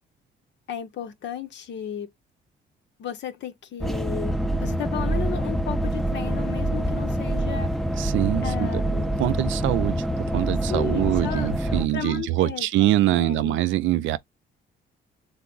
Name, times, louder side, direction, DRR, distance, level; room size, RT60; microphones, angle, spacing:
voice 1, 0.7-2.1 3.0-7.7 8.4-9.1 10.7-13.6, left 9 dB, 65° left, 0.6 m, -34 dB
sound 1, 3.8-11.9, right 1 dB, ahead, 0.5 m, -26 dB
voice 2, 8.0-8.8 9.2-14.2, right 14 dB, 75° right, 0.4 m, -24 dB
3.5 x 2.0 x 3.7 m
cardioid pair, 90°, 20 cm